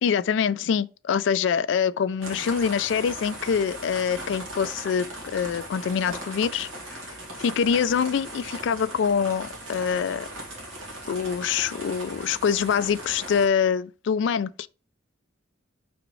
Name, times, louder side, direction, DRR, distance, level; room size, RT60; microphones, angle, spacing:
voice 1, 0.0-7.0 7.4-10.3 11.1-14.7, left 7 dB, 65° left, 0.3 m, -25 dB
sound 1, 2.2-13.5, right 1 dB, 80° right, 1.8 m, -39 dB
4.9 x 3.5 x 3.1 m
head